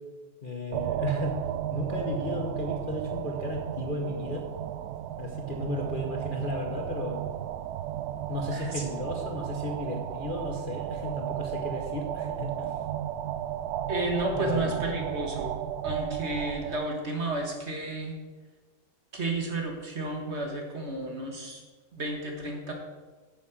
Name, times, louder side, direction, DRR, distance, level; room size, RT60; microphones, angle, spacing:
voice 1, 0.4-1.4 1.7-4.5 5.2-7.2 8.3-12.7 14.3-14.8, left 2 dB, 35° left, 1 dB, 1.1 m, -34 dB
sound 1, 0.7-16.8, right 11 dB, 75° right, 1.0 m, -34 dB
voice 2, 8.5-8.8 13.9-15.5 15.8-18.2 19.1-21.6 21.9-22.7, right 2 dB, 45° right, 1 dB, 1.8 m, -32 dB
8.6 x 7.6 x 7.3 m, 1.3 s
omnidirectional pair, 1.8 m